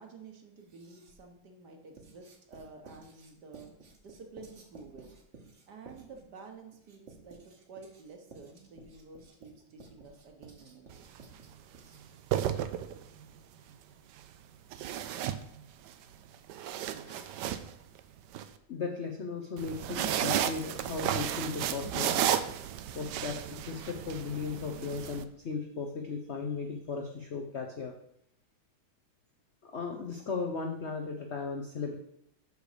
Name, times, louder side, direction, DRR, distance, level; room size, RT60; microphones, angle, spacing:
voice 1, 0.0-3.7 4.0-5.1 5.7-11.1, right 4 dB, 55° right, 3 dB, 1.6 m, -51 dB
Writing, 0.6-1.3 1.9-12.3, right 4 dB, 40° right, 1.2 m, -55 dB
sound 1, 10.9-11.2 12.1-13.2 14.7-15.9 16.3-18.4 19.6-25.2, right 10 dB, 75° right, 1.0 m, -33 dB
voice 2, 18.7-22.4 22.9-27.9 29.6-32.0, left 4 dB, 75° left, 2 dB, 0.6 m, -36 dB
6.6 x 6.5 x 5.0 m, 0.75 s
omnidirectional pair, 2.3 m